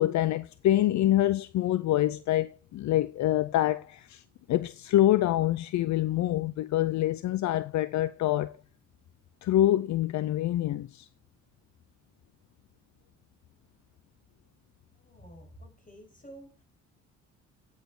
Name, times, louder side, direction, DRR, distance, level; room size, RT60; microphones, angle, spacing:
voice 1, 0.0-8.6 9.4-11.1, left 13 dB, 65° left, 0.6 m, -26 dB
voice 2, 14.9-16.6, right 1 dB, 25° left, 6.3 m, -50 dB
9.3 x 6.6 x 4.9 m
cardioid pair, 90°, 30 cm